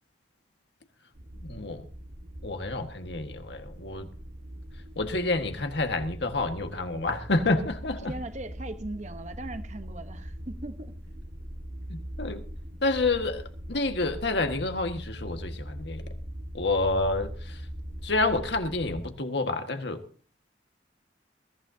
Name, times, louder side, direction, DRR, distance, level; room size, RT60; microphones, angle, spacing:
sound 1, 1.1-19.1, equal, 80° right, 1.8 m, -41 dB
voice 1, 1.4-1.8 2.4-4.1 4.9-8.1 11.9-12.4 12.8-16.1 16.5-17.6 18.0-20.0, left 2 dB, 70° left, 1.7 m, -29 dB
voice 2, 8.0-10.9, right 1 dB, 40° right, 1.1 m, -39 dB
21.5 x 14.5 x 2.8 m
head